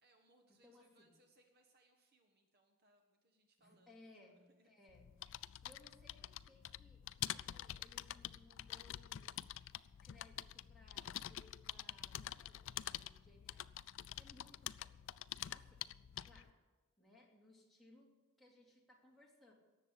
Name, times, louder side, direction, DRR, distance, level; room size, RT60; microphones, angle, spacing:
voice 1, 0.0-4.7 5.5-5.6 14.0-14.3, right 2 dB, 50° right, 4 dB, 1.4 m, -73 dB
voice 2, 0.6-1.1 3.6-5.1 5.6-9.7 10.0-13.7 14.2-15.0 15.5-15.9 16.2-16.6 17.0-18.1 18.4-19.5, left 2 dB, ahead, -4 dB, 2.8 m, -65 dB
sound 1, 4.9-16.5, left 12 dB, 60° left, 0.4 m, -47 dB
18.0 x 7.2 x 8.2 m, 1.2 s
head